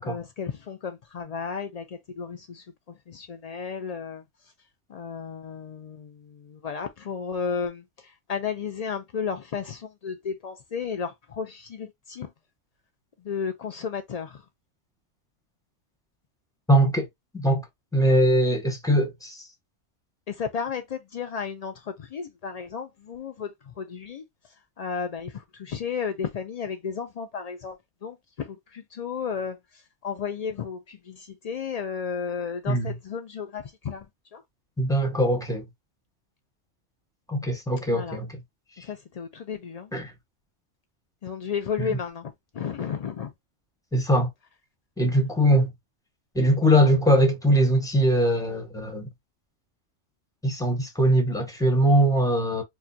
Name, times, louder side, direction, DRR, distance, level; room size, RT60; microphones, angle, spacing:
voice 1, 0.0-1.8 2.2-2.6 3.1-4.2 4.9-7.8 8.3-12.3 13.2-14.4 20.3-24.2 24.8-27.8 28.0-29.6 30.0-34.0 34.3-34.4 37.9-38.2 38.8-39.9 41.2-43.3, left 6 dB, 80° left, 0.3 m, -33 dB
voice 2, 16.7-17.1 17.3-17.6 17.9-19.4 32.7-32.9 34.8-35.6 37.3-38.3 39.9-40.1 41.8-42.0 43.9-44.3 45.0-45.7 46.3-49.1 50.4-52.6, equal, 5° left, 1.0 m, -21 dB
4.7 x 2.2 x 2.6 m
omnidirectional pair, 1.3 m